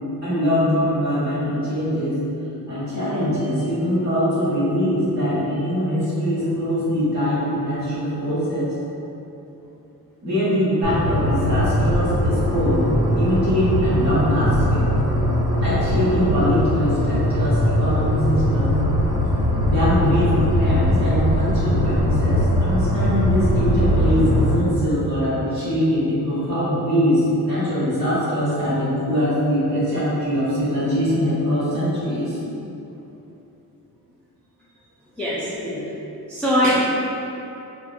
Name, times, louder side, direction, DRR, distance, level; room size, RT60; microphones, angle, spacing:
voice 1, 0.2-2.2 2.7-8.7 10.2-12.9 13.1-14.9 15.6-18.8 19.6-32.4 35.6-35.8, equal, 45° right, -10 dB, 1.4 m, -22 dB
sound 1, 10.8-24.5, equal, 65° right, 1.0 m, -20 dB
voice 2, 35.2-35.5 36.3-36.8, equal, 5° left, -9 dB, 0.3 m, -21 dB
4.3 x 2.1 x 2.3 m, 2.9 s
cardioid pair, 135°, 37 cm